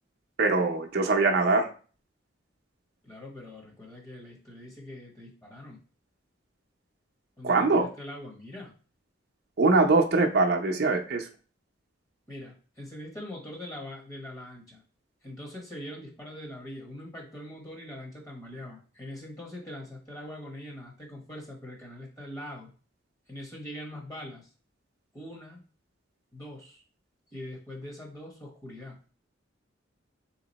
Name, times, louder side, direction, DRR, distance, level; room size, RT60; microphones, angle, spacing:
voice 1, 0.4-1.7 7.4-7.9 9.6-11.3, right 3 dB, 55° right, 2 dB, 0.6 m, -23 dB
voice 2, 3.0-5.8 7.4-8.7 12.3-14.8 15.2-22.7 23.3-24.5 25.1-25.6 26.3-26.8 27.3-29.1, left 1 dB, 20° left, -1 dB, 0.9 m, -42 dB
3.7 x 2.9 x 4.0 m, 0.38 s
head